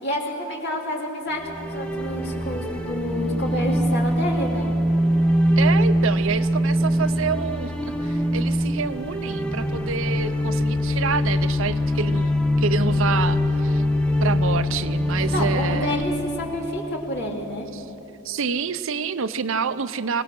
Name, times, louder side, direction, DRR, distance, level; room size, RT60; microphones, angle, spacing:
voice 1, 0.0-4.7 15.3-17.7, left 1 dB, 50° left, -1 dB, 2.9 m, -29 dB
sound 1, 1.4-17.5, equal, 5° left, 0.8 m, -23 dB
voice 2, 5.6-13.8 14.2-16.0 17.7-17.8 18.2-20.2, right 6 dB, 60° right, 13 dB, 0.6 m, -28 dB
23.0 x 18.5 x 6.2 m, 2.9 s
head